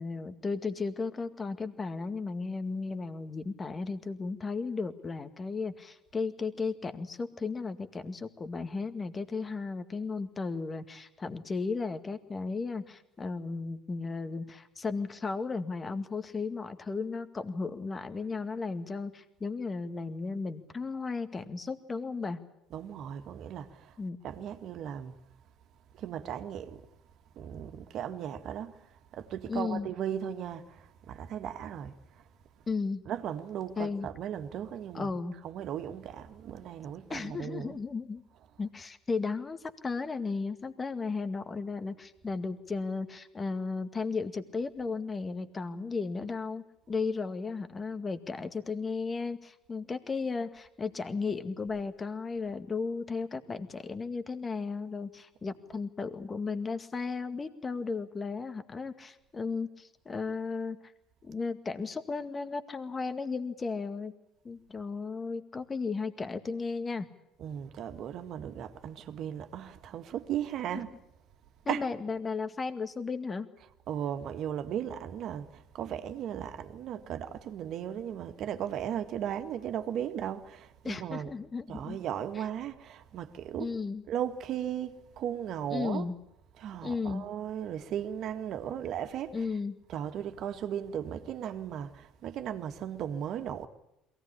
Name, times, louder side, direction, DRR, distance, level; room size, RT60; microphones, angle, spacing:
voice 1, 0.0-22.4 24.0-24.2 29.5-29.9 32.7-33.0 33.8-34.1 34.9-35.4 37.1-38.2 38.6-60.8 61.2-64.1 64.4-67.1 70.7-70.8 71.7-73.5 80.8-82.0 82.4-82.5 83.6-84.0 85.7-86.1 86.8-87.3 89.3-89.8, left 4 dB, 30° left, 2.0 m, -35 dB
voice 2, 22.7-23.9 24.2-25.1 26.0-26.8 27.4-28.7 29.1-30.8 31.1-31.9 33.1-35.1 35.4-37.8 55.7-55.8 67.4-70.9 71.7-71.9 73.9-81.3 81.7-83.7 84.1-86.1 86.6-89.5 89.9-93.7, right 9 dB, 60° right, 1.9 m, -36 dB
22.5 x 18.0 x 9.9 m
hypercardioid pair, 70°, 0 cm